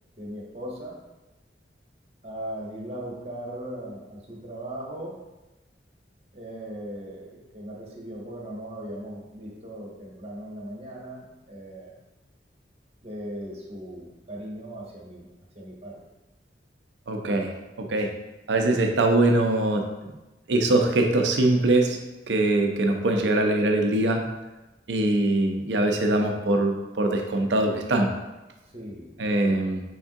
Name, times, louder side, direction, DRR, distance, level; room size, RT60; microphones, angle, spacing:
voice 1, 0.2-1.0 2.2-5.2 6.3-11.9 13.0-15.3 15.5-16.0 28.7-29.1, right 1 dB, 35° right, -2 dB, 0.9 m, -38 dB
voice 2, 17.1-17.5 17.8-18.1 18.5-19.8 20.5-22.0 22.3-24.2 24.9-28.1 29.2-29.8, right 2 dB, 80° right, 3 dB, 0.6 m, -22 dB
5.4 x 3.6 x 2.7 m, 1.0 s
head